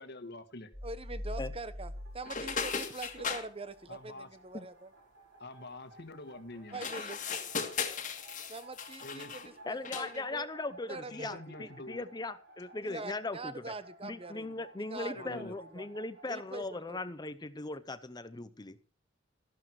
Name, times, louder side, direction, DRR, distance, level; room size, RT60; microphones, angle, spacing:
voice 1, 0.0-0.7 3.9-4.3 5.4-6.8 9.0-9.4 11.1-12.1 15.1-15.6, left 2 dB, 60° left, 10 dB, 1.6 m, -46 dB
sound 1, 0.7-3.5, left 1 dB, 5° left, 2.0 m, -43 dB
voice 2, 0.8-4.9 6.7-7.2 8.5-10.5 10.9-11.7 12.8-14.5 14.8-15.9 16.3-17.0, right 3 dB, 30° right, 13 dB, 1.1 m, -44 dB
sound 2, 1.9-16.6, right 1 dB, 65° right, 6.4 m, -56 dB
sound 3, 2.3-3.5 6.7-9.5 9.8-10.2, left 6 dB, 40° left, 1.9 m, -37 dB
voice 3, 9.7-13.7 14.0-18.8, left 2 dB, 20° left, 14 dB, 0.7 m, -39 dB
13.5 x 12.0 x 4.6 m, 0.35 s
head